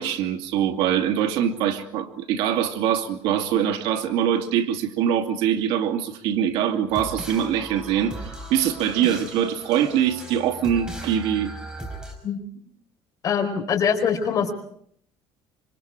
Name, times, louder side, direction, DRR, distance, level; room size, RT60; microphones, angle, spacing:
voice 1, 0.0-11.5, right 9 dB, 85° right, 5 dB, 2.5 m, -23 dB
sound 1, 6.9-12.1, right 1 dB, 10° right, 5.3 m, -37 dB
voice 2, 13.2-14.5, left 7 dB, 40° left, 4 dB, 4.4 m, -23 dB
26.0 x 25.0 x 4.9 m, 0.65 s
cardioid pair, 160°, 9 cm